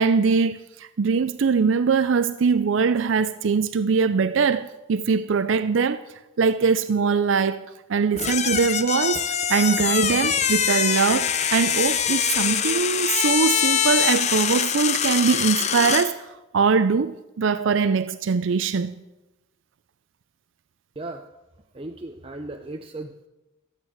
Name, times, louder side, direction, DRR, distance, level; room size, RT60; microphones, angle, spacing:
voice 1, 0.0-6.1 6.4-16.3 16.5-18.9, right 5 dB, 70° right, 0.5 m, -22 dB
sound 1, 8.2-16.1, left 8 dB, 35° left, 0.7 m, -23 dB
voice 2, 21.7-23.3, right 2 dB, 30° right, 0.7 m, -36 dB
13.5 x 8.2 x 8.8 m
head